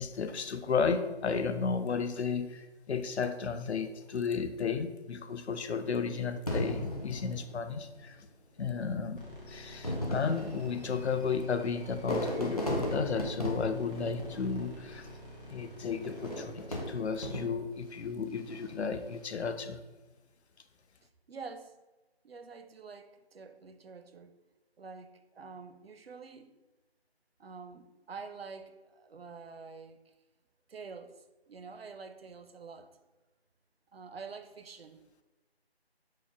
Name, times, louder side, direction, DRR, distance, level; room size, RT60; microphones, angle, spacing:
voice 1, 0.0-8.3 8.6-9.2 9.5-15.1 15.5-19.8, left 5 dB, 85° left, 10 dB, 0.5 m, -33 dB
Fireworks, 6.5-8.1 8.9-9.0 9.7-15.0 16.0-17.8 18.4-18.9, equal, 35° left, 0.6 m, -36 dB
voice 2, 8.6-9.0 21.0-21.8 22.2-24.4 24.8-26.5 27.4-30.1 30.7-33.0 33.9-35.0, right 5 dB, 65° right, 9 dB, 0.5 m, -47 dB
sound 1, 9.2-18.3, left 1 dB, 55° left, 1.3 m, -49 dB
4.7 x 2.1 x 4.6 m, 1.2 s
figure-of-eight pair, 175°, 32 cm